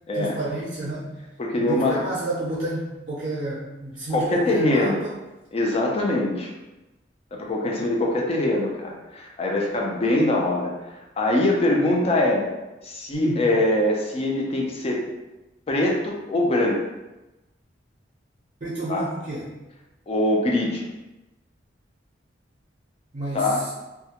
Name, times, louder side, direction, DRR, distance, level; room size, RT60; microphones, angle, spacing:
voice 1, 0.1-1.1 1.6-5.1 13.1-13.5 18.6-19.5 23.1-23.7, right 1 dB, 40° right, -7 dB, 0.5 m, -30 dB
voice 2, 1.4-2.0 4.1-5.0 5.5-6.5 7.3-12.5 12.8-15.1 15.7-16.8 18.9-19.1 20.1-20.8 23.3-23.6, left 1 dB, 35° left, -1 dB, 0.4 m, -23 dB
2.3 x 2.1 x 2.8 m, 1.0 s
head